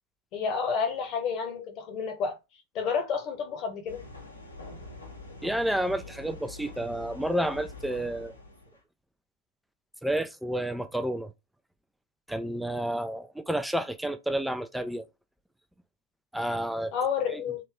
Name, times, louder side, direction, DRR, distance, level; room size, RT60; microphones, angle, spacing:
voice 1, 0.3-2.4 2.7-4.0 16.9-17.6, left 6 dB, 40° left, 1.1 m, -30 dB
sound 1, 3.9-8.8, left 2 dB, 80° left, 1.1 m, -45 dB
voice 2, 5.4-8.3 10.0-11.3 12.3-15.0 16.3-16.9 17.3-17.4, right 1 dB, ahead, 0.3 m, -30 dB
3.4 x 2.9 x 3.5 m
figure-of-eight pair, 90°, 0 cm